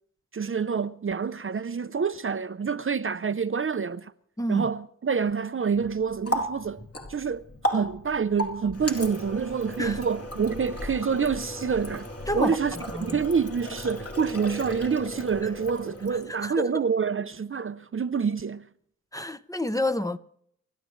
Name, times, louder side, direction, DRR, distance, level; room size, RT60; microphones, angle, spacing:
voice 1, 0.3-4.1 4.5-12.1 12.3-18.7, right 6 dB, 40° right, 0.6 m, -27 dB
voice 2, 4.4-4.7 9.8-10.0 12.3-12.6 12.9-13.2 16.4-16.7 19.1-20.2, left 1 dB, 10° left, 0.7 m, -28 dB
Water tap faucet, 5.7-16.5, equal, 50° left, 2.9 m, -35 dB
28.5 x 13.5 x 3.2 m
wide cardioid pair, 80°, 31 cm